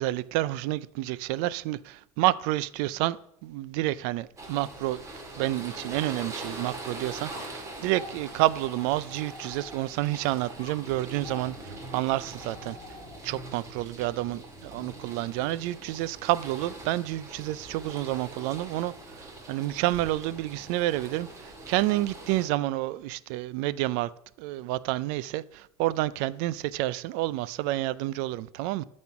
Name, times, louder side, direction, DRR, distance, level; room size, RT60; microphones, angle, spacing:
voice 1, 0.0-3.2 3.4-5.0 5.4-12.8 13.2-18.9 19.5-24.1 24.4-28.9, right 16 dB, 70° right, 0.4 m, -29 dB
sound 1, 4.4-22.5, right 2 dB, 20° right, 2.1 m, -43 dB
sound 2, 7.3-10.1 10.6-13.4, left 2 dB, 20° left, 3.0 m, -48 dB
12.0 x 4.3 x 5.8 m
cardioid pair, 140°, 15 cm